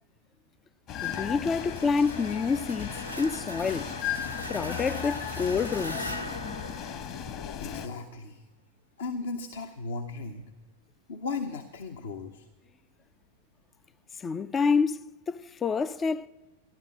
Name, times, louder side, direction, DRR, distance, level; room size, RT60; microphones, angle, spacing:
sound 1, 0.9-7.9, left 9 dB, 40° left, 1.3 m, -36 dB
sound 2, 1.0-7.7, equal, 85° left, 0.9 m, -40 dB
voice 1, 1.0-3.9 4.5-6.1 14.2-15.0 15.3-16.3, left 5 dB, 20° left, 0.4 m, -28 dB
voice 2, 7.6-8.4 9.0-10.4 11.1-12.5, left 4 dB, 60° left, 1.1 m, -36 dB
14.0 x 11.5 x 8.3 m
figure-of-eight pair, 90°, 0 cm